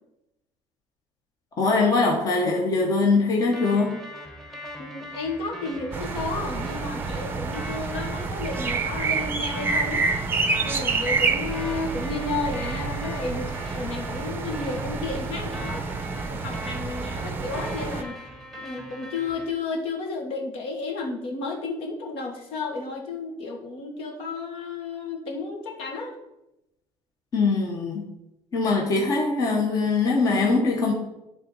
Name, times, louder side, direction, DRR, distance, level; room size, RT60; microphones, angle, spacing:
voice 1, 1.6-4.0 27.3-28.0 28.5-30.9, left 3 dB, 35° left, 0 dB, 1.1 m, -22 dB
sound 1, 3.5-19.5, right 1 dB, ahead, 1.1 m, -41 dB
voice 2, 4.8-10.1 10.6-15.8 16.2-18.2 18.6-26.1, left 3 dB, 65° left, 2 dB, 1.5 m, -32 dB
sound 2, 5.9-18.0, right 4 dB, 20° right, 0.6 m, -28 dB
10.0 x 3.7 x 5.4 m, 0.90 s
cardioid pair, 155°, 11 cm